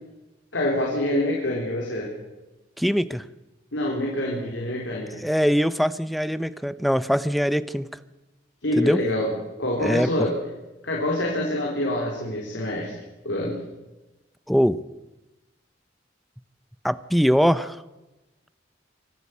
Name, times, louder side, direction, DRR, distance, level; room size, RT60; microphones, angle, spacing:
voice 1, 0.5-2.1 3.7-5.2 8.6-9.3 9.6-10.3 10.8-12.9 13.2-13.6, left 1 dB, 85° left, -2 dB, 4.2 m, -26 dB
voice 2, 2.8-3.2 5.2-7.9 8.8-9.0 9.8-10.1 14.5-14.8 16.8-17.8, equal, ahead, 15 dB, 0.6 m, -22 dB
24.5 x 12.5 x 8.4 m, 1.0 s
head